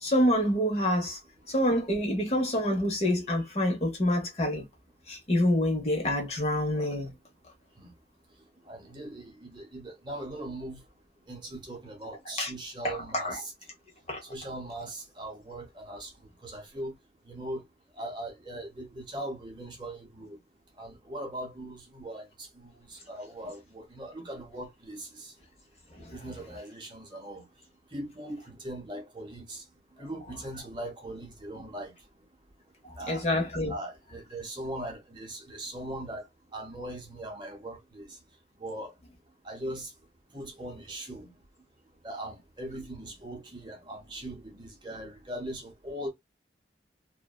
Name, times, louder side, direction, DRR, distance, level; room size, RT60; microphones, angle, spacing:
voice 1, 0.0-1.2 1.5-4.6 5.1-7.1 12.4-12.5 12.8-13.4 14.1-14.2 26.0-26.2 32.8-33.7, left 1 dB, 35° left, 0.8 m, -27 dB
voice 2, 8.7-10.8 11.3-13.5 14.3-16.1 16.4-16.9 17.3-17.6 18.0-20.4 20.8-22.3 22.9-25.3 26.1-27.4 27.9-29.6 30.0-31.9 33.0-33.2 33.7-36.2 36.5-38.2 38.6-38.9 39.4-39.9 40.3-41.3 42.0-46.1, right 1 dB, 25° right, 0.7 m, -40 dB
2.6 x 2.1 x 2.2 m
head